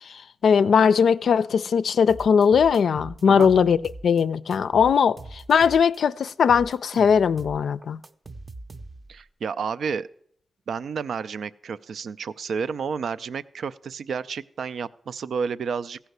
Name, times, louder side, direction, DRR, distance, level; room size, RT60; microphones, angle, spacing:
voice 1, 0.4-3.8 4.0-8.0, left 6 dB, 85° left, 0.4 m, -19 dB
sound 1, 2.1-4.2 4.5-6.0 6.3-9.2, right 2 dB, 35° right, 0.5 m, -42 dB
voice 2, 9.1-10.1 10.7-16.0, right 6 dB, 85° right, 0.4 m, -31 dB
15.5 x 5.7 x 7.9 m
wide cardioid pair, 105°, 0 cm